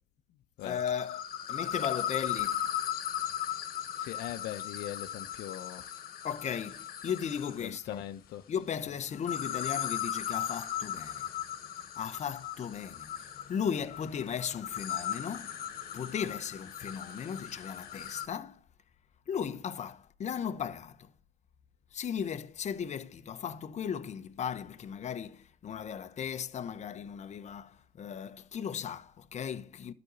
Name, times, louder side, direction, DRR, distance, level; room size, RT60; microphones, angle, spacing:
sound 1, 0.6-7.7 9.1-18.3, left 10 dB, 60° left, 1.6 m, -37 dB
voice 1, 0.6-1.2 1.5-2.7 6.2-8.0 8.5-11.3 12.0-18.6 19.3-21.1 21.9-29.9, left 8 dB, 45° left, 1.1 m, -36 dB
voice 2, 4.0-5.9 7.6-8.4, left 12 dB, 80° left, 0.9 m, -40 dB
12.5 x 5.3 x 8.3 m
cardioid pair, 110°, 17 cm